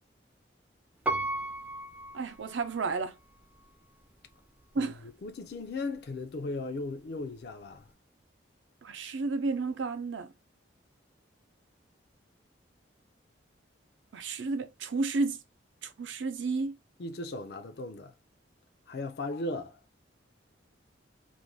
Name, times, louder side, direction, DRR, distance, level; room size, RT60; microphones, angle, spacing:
Piano, 1.1-3.0 3.6-3.7, right 2 dB, 10° right, 0.3 m, -35 dB
voice 1, 2.1-3.1 4.7-5.0 8.8-10.3 14.1-15.4 15.8-16.8, right 3 dB, 75° right, 0.5 m, -32 dB
voice 2, 5.2-7.8 17.0-18.1 18.9-19.8, left 2 dB, 55° left, 0.4 m, -37 dB
2.5 x 2.1 x 3.0 m
head